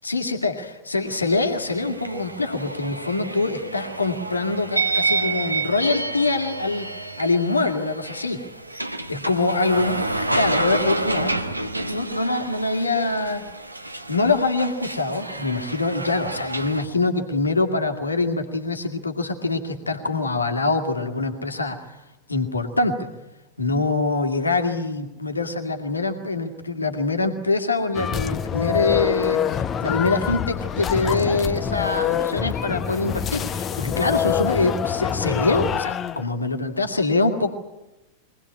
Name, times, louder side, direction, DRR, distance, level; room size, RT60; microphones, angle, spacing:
voice 1, 0.0-6.9 7.2-8.5 9.1-13.5 14.1-21.9 22.3-23.1 23.6-37.5, left 3 dB, 80° left, 5 dB, 2.2 m, -24 dB
sound 1, 1.0-16.9, right 3 dB, 85° right, 1.3 m, -29 dB
sound 2, 27.9-36.2, left 8 dB, 25° left, 1.1 m, -25 dB
23.5 x 19.0 x 9.7 m, 1.0 s
figure-of-eight pair, 90°, 0 cm